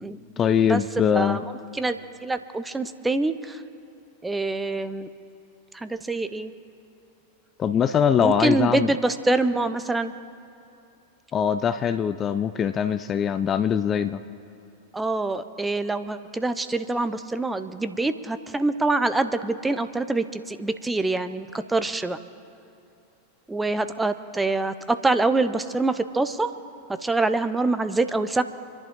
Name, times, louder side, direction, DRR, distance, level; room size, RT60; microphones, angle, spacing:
voice 1, 0.4-1.4 7.6-8.9 11.3-14.2, left 8 dB, 25° left, 11 dB, 0.6 m, -22 dB
voice 2, 1.1-1.4 1.7-3.6 4.2-5.1 5.7-6.5 8.2-10.1 14.9-22.2 23.5-26.5 27.0-28.4, right 2 dB, 10° right, 11 dB, 0.8 m, -25 dB
27.5 x 11.0 x 3.8 m, 2.7 s
figure-of-eight pair, 90°, 0 cm